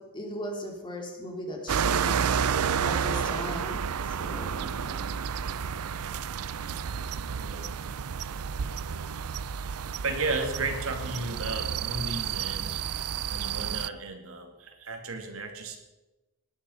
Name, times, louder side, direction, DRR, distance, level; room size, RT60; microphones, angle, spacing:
voice 1, 0.0-5.0, left 1 dB, 20° left, 1 dB, 3.0 m, -39 dB
sound 1, 1.7-13.9, right 7 dB, 90° right, 0.5 m, -31 dB
voice 2, 8.7-9.2 10.0-12.8 13.3-15.8, right 3 dB, 65° right, 4 dB, 2.4 m, -34 dB
19.0 x 11.5 x 5.6 m, 1.1 s
head